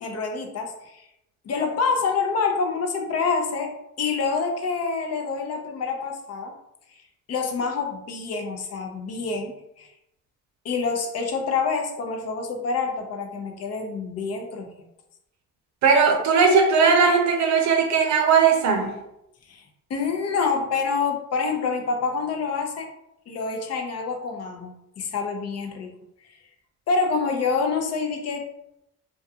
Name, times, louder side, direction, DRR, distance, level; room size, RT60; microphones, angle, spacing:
voice 1, 0.0-1.0 1.5-6.5 7.3-9.9 10.6-14.7 19.5-19.6 19.9-22.9 23.3-25.9 26.9-28.5, left 4 dB, 55° left, 4 dB, 0.5 m, -27 dB
voice 2, 15.8-18.9, right 5 dB, 65° right, 3 dB, 0.6 m, -18 dB
2.3 x 2.3 x 2.7 m, 0.83 s
cardioid pair, 90°, 30 cm